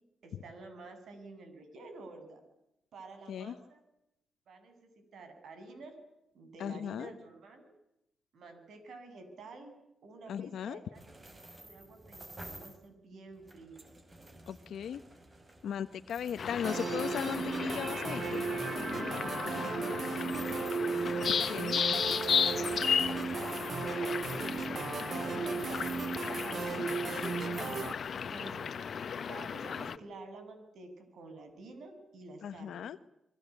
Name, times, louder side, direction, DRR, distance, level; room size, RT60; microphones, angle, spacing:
voice 1, 0.2-2.4 2.9-3.8 4.5-6.0 6.3-7.7 8.3-9.7 10.0-11.2 11.6-13.8 18.9-19.2 19.7-20.5 20.8-24.4 25.0-27.5 28.1-28.7 29.2-32.8, right 3 dB, 80° right, 8 dB, 7.7 m, -51 dB
voice 2, 6.6-7.1 10.3-10.8 14.5-15.0 15.6-18.5 21.5-21.8 32.4-33.0, left 8 dB, 85° left, 10 dB, 1.1 m, -37 dB
sound 1, 10.9-12.9 13.3-19.3 20.2-27.1 27.4-28.5, right 1 dB, 30° right, 5.5 m, -53 dB
sound 2, 16.4-30.0, left 7 dB, 60° left, 1.3 m, -35 dB
sound 3, 16.6-27.9, right 5 dB, 55° right, 1.0 m, -36 dB
28.0 x 22.5 x 8.4 m, 0.84 s
cardioid pair, 100°, 0 cm